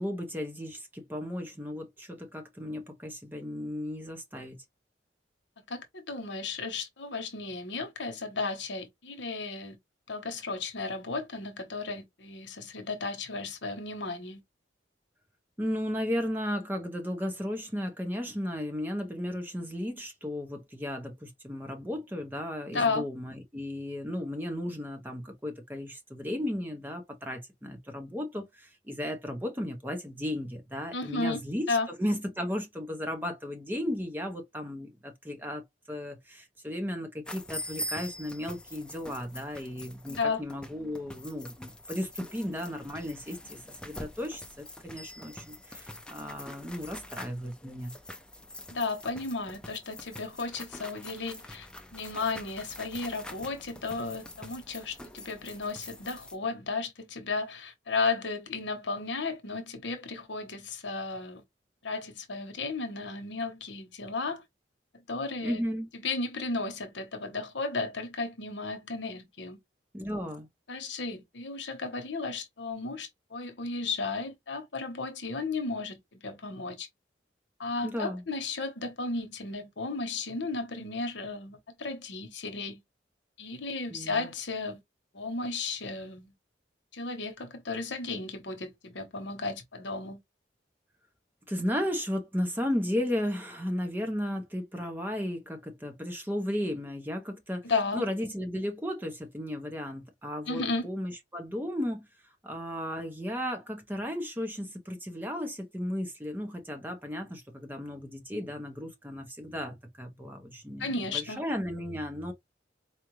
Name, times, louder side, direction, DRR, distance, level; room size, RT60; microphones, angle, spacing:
voice 1, 0.0-4.6 15.6-47.9 65.4-65.9 69.9-70.5 77.8-78.2 83.9-84.3 91.5-97.6 97.9-102.1 102.4-112.3, equal, 10° right, 0.9 m, -35 dB
voice 2, 5.7-9.8 10.1-14.4 22.7-23.1 30.9-31.4 31.7-31.9 40.1-40.4 48.7-51.7 51.9-61.4 61.8-64.4 65.1-65.6 66.0-69.6 70.7-76.9 77.6-82.8 83.4-84.8 85.1-86.3 86.9-90.2 97.6-98.0 100.5-100.9 110.8-111.4, left 3 dB, 75° left, 1.0 m, -34 dB
sound 1, 37.2-56.3, left 1 dB, 5° left, 0.5 m, -44 dB
4.4 x 2.4 x 3.1 m
head